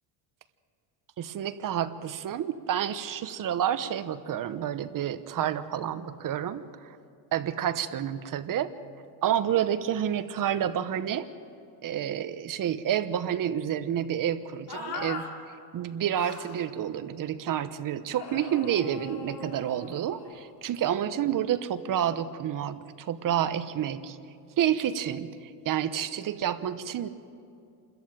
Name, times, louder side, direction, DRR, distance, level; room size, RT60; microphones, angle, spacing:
voice 1, 1.2-6.9 7.3-8.7 9.2-11.3 11.8-15.3 15.7-24.2 24.6-27.1, right 10 dB, 40° right, 12 dB, 1.0 m, -29 dB
sound 1, 14.7-15.3 16.1-16.6 18.1-20.5, left 5 dB, 50° left, 3.5 m, -40 dB
28.0 x 14.0 x 9.0 m, 2.5 s
cardioid pair, 125°, 49 cm